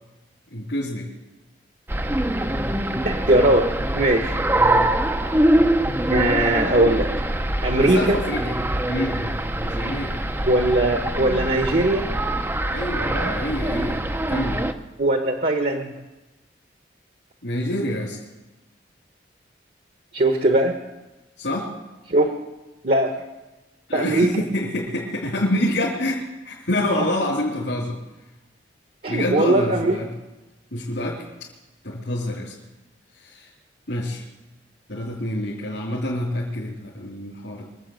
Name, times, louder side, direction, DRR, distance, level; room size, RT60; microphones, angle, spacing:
voice 1, 0.5-1.1 4.6-4.9 7.8-8.6 8.9-9.4 9.6-10.2 12.7-14.0 14.3-14.6 17.4-18.2 21.4-21.7 23.9-28.0 29.1-30.1 30.7-31.3 31.8-32.5 33.1-33.5 33.9-34.2 34.9-37.6, left 1 dB, 70° left, -5 dB, 3.2 m, -27 dB
sound 1, 1.9-14.7, right 1 dB, 10° right, 0.6 m, -23 dB
voice 2, 3.0-3.7 3.9-4.4 6.1-7.1 7.6-8.2 10.4-12.1 15.0-15.9 20.1-20.8 22.1-22.4 22.8-23.2 23.9-24.3 29.0-30.0, right 1 dB, 45° right, 5 dB, 1.2 m, -20 dB
23.5 x 7.8 x 7.8 m, 1.1 s
head